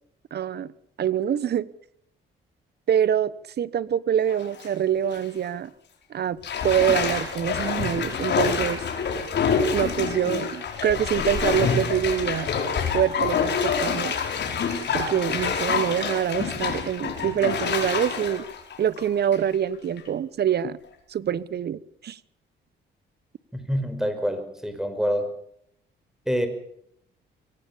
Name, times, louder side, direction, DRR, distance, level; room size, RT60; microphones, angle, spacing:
voice 1, 0.3-0.7 1.0-1.7 2.9-5.7 6.1-8.8 9.7-12.5 12.9-14.2 14.9-18.5 18.8-20.8 21.1-22.2, right 9 dB, 55° right, 1.1 m, -25 dB
Bathtub (filling or washing), 4.3-4.7 5.1-5.2 6.4-19.5 20.0-20.1, left 6 dB, 60° left, 5.0 m, -27 dB
voice 2, 23.5-25.3 26.3-26.5, equal, ahead, 5.4 m, -26 dB
23.5 x 18.0 x 7.2 m
cardioid pair, 90°, 20 cm